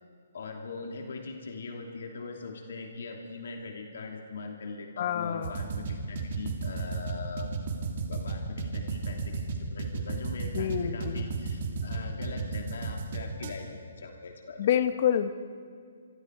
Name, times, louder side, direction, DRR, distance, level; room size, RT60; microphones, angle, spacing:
voice 1, 0.3-7.5 8.1-14.7, left 4 dB, 65° left, 2 dB, 3.1 m, -41 dB
voice 2, 5.0-5.6 10.5-11.3 14.6-15.3, left 9 dB, 40° left, 10 dB, 1.1 m, -27 dB
sound 1, 5.4-13.5, right 4 dB, 45° right, 2.8 m, -33 dB
27.5 x 23.5 x 4.9 m, 2.1 s
hypercardioid pair, 165°, 0 cm